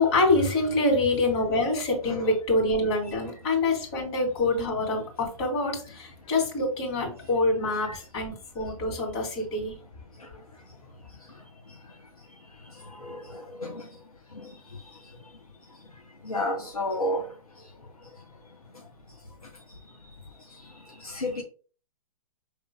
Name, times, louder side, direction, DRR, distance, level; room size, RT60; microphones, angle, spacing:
voice 1, 0.0-9.7, left 2 dB, 45° left, 2.3 m, -25 dB
voice 2, 12.8-13.9 14.4-14.5 16.2-17.3 21.0-21.4, left 1 dB, 90° left, 0.8 m, -31 dB
5.6 x 3.2 x 2.2 m
figure-of-eight pair, 115°, 18 cm